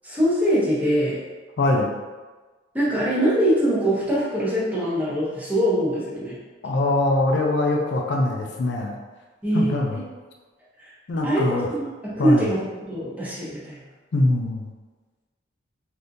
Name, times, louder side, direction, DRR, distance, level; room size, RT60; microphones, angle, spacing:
voice 1, 0.0-1.2 2.7-6.4 9.4-9.8 11.2-13.8, equal, 10° right, -8 dB, 0.8 m, -23 dB
voice 2, 1.6-1.9 6.6-8.9 9.5-10.0 11.1-11.7 12.2-12.5 14.1-14.7, left 2 dB, 60° left, 0 dB, 0.4 m, -22 dB
3.4 x 2.6 x 2.6 m, 1.3 s
head